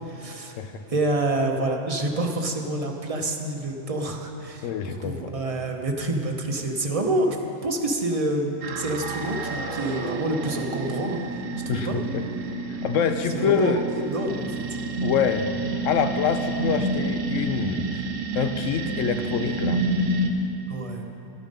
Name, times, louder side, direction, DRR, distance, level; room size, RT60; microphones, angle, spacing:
voice 1, 0.1-0.6 0.9-11.4 11.7-12.0 13.3-13.7 14.1-14.7 20.7-21.1, right 2 dB, 30° right, 2 dB, 0.9 m, -27 dB
voice 2, 4.6-5.4 11.7-12.2 12.8-13.8 15.0-15.5 15.8-18.0 18.3-19.8, left 7 dB, 80° left, 8 dB, 1.0 m, -26 dB
sound 1, 8.6-20.3, right 2 dB, 80° right, 1.2 m, -29 dB
12.5 x 8.9 x 5.3 m, 2.8 s
omnidirectional pair, 1.3 m